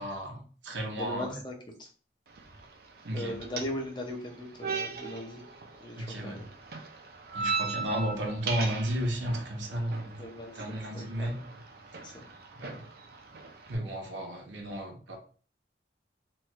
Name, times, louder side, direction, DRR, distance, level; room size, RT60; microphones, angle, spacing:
voice 1, 0.0-1.4 3.0-3.4 6.0-6.4 7.3-10.2 10.5-11.4 12.5-12.9 13.7-15.2, equal, 85° right, 1 dB, 0.8 m, -33 dB
voice 2, 1.0-1.5 1.8-1.9 3.1-5.4 5.8-6.4 10.2-10.6 10.9-11.3 12.0-12.2, left 1 dB, 25° left, 1 dB, 0.6 m, -38 dB
sound 1, 2.3-13.7, right 5 dB, 55° right, 0.5 m, -39 dB
3.1 x 2.4 x 3.0 m, 0.39 s
head